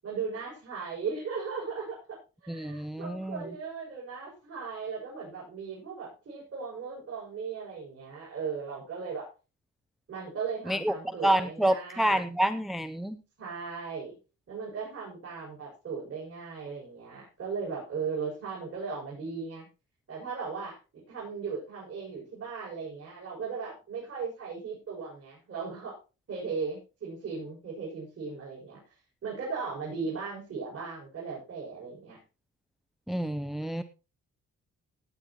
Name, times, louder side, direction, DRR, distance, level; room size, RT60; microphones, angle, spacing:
voice 1, 0.0-9.3 10.1-12.2 13.4-14.1 14.5-19.7 20.1-20.8 21.1-26.0 26.3-28.8 29.2-32.2, right 5 dB, 50° right, -6 dB, 7.2 m, -37 dB
voice 2, 2.5-3.5 10.7-10.9 11.2-13.2 33.1-33.8, right 1 dB, ahead, 11 dB, 0.6 m, -28 dB
18.0 x 9.5 x 3.1 m, 0.31 s
cardioid pair, 90°, 30 cm